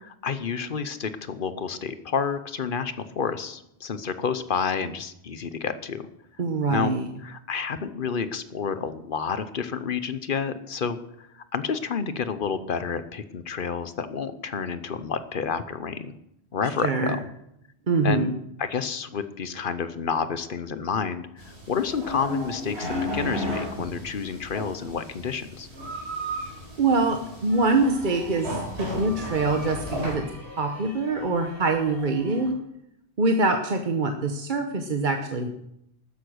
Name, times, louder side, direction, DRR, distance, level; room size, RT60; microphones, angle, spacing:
voice 1, 0.0-6.1 6.7-6.9 7.2-16.1 16.5-17.2 18.0-18.3 18.6-25.7, left 6 dB, 55° left, 12 dB, 1.0 m, -30 dB
voice 2, 6.4-7.1 16.8-17.2 17.9-18.3 26.8-28.5 28.8-30.2 30.6-32.6 33.2-35.5, right 3 dB, 50° right, 5 dB, 1.1 m, -24 dB
sound 1, 21.4-30.1, left 1 dB, 75° right, 4.5 m, -34 dB
sound 2, 27.5-32.5, left 1 dB, 75° left, 4.8 m, -44 dB
13.0 x 9.8 x 6.3 m, 0.80 s
omnidirectional pair, 1.1 m